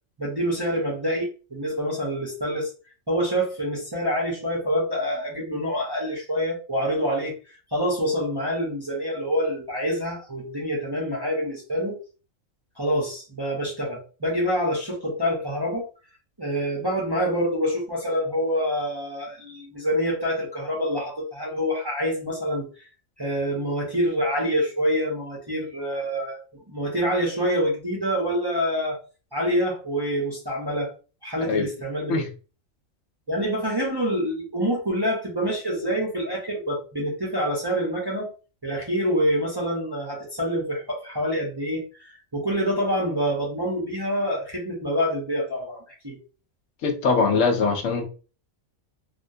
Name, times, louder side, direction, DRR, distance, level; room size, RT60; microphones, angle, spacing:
voice 1, 0.2-2.7 3.1-12.0 12.8-15.9 16.4-22.7 23.2-29.0 29.3-30.9 31.2-32.1 33.3-38.3 38.6-46.2, equal, 25° right, -4 dB, 0.6 m, -26 dB
voice 2, 46.8-48.0, left 4 dB, 75° left, 4 dB, 1.0 m, -22 dB
3.5 x 2.2 x 2.6 m, 0.35 s
omnidirectional pair, 1.4 m